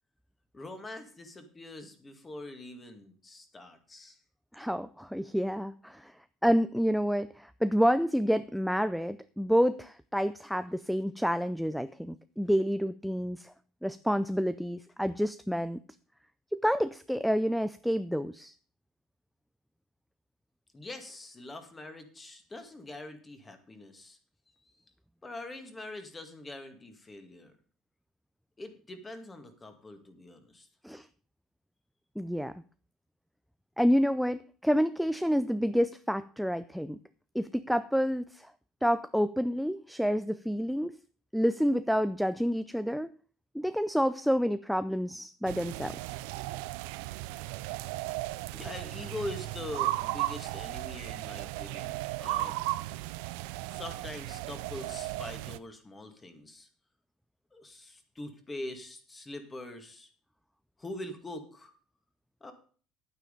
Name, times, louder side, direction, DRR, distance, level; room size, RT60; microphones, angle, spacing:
voice 1, 0.5-4.2 20.7-24.2 24.6-24.7 25.2-27.5 28.6-30.7 47.5-47.8 48.5-52.6 53.7-56.7 57.5-60.1 60.8-61.7 62.4-62.5, left 1 dB, 15° left, 7 dB, 1.9 m, -43 dB
voice 2, 4.5-6.1 6.4-13.5 13.8-15.8 16.5-18.5 30.8-31.1 32.2-32.6 33.8-37.0 37.3-38.5 38.8-41.0 41.3-43.1 43.5-46.0, equal, ahead, 14 dB, 0.4 m, -28 dB
sound 1, 45.5-55.6, right 18 dB, 90° right, 0.5 m, -36 dB
9.5 x 9.2 x 5.3 m, 0.42 s
cardioid pair, 125°, 0 cm